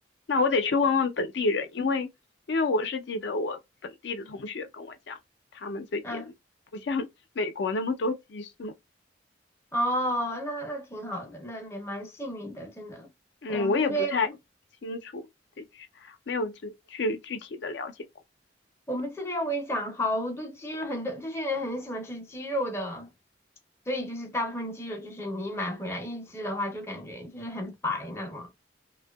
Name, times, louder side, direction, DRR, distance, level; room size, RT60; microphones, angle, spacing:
voice 1, 0.3-2.1 2.5-5.2 5.5-6.2 6.7-7.1 7.4-8.7 13.4-14.3 14.8-15.3 15.6-17.9, left 3 dB, 65° left, 0.4 m, -29 dB
voice 2, 9.7-13.1 13.5-14.2 18.9-23.1 23.9-28.5, equal, 15° left, 0.5 m, -32 dB
2.6 x 2.1 x 2.2 m
head